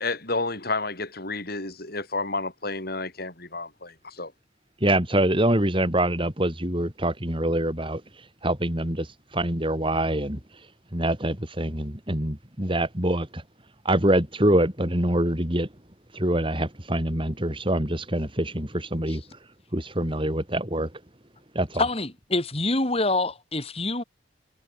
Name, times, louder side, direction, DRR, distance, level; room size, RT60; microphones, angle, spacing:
voice 1, 0.0-4.3, left 3 dB, 50° left, 6.7 m, -31 dB
voice 2, 4.8-8.0 8.4-10.4 10.9-13.4 13.8-15.7 16.1-19.2 19.7-20.9 21.5-21.8, right 1 dB, 25° right, 4.1 m, -25 dB
voice 3, 21.8-24.0, left 2 dB, 30° left, 3.3 m, -26 dB
head